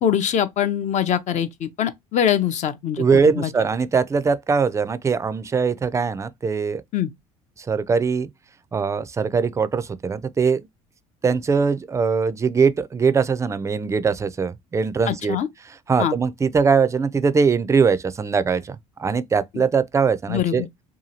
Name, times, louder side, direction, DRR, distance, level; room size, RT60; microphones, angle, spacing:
voice 1, 0.0-3.5 6.9-7.1 15.1-15.5 16.0-16.1 19.5-19.6 20.3-20.7, left 9 dB, 45° left, 0.5 m, -23 dB
voice 2, 3.0-6.8 7.6-8.3 8.7-10.6 11.2-15.4 15.9-20.7, right 5 dB, 20° right, 0.4 m, -21 dB
2.8 x 2.3 x 2.7 m
hypercardioid pair, 70°, 17 cm